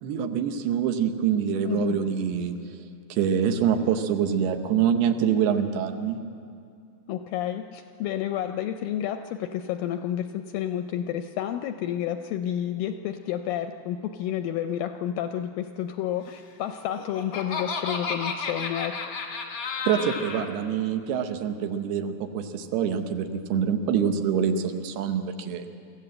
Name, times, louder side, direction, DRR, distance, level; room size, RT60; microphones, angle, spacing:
voice 1, 0.0-2.5 3.1-6.2 19.9-25.7, right 8 dB, 80° right, 7 dB, 3.0 m, -25 dB
voice 2, 1.6-2.1 7.1-19.1, left 10 dB, 80° left, 7 dB, 2.0 m, -30 dB
Laughter, 16.7-20.5, left 4 dB, 60° left, 1.1 m, -32 dB
24.0 x 15.0 x 7.7 m, 2.4 s
omnidirectional pair, 4.6 m